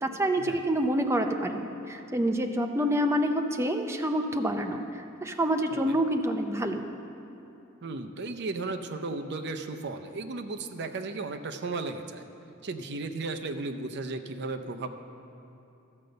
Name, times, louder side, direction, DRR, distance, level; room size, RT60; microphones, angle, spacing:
voice 1, 0.0-6.9, right 1 dB, 15° right, 4 dB, 0.6 m, -27 dB
voice 2, 7.8-12.2 12.6-15.0, right 3 dB, 55° right, 7 dB, 0.6 m, -35 dB
13.0 x 5.2 x 7.8 m, 2.9 s
head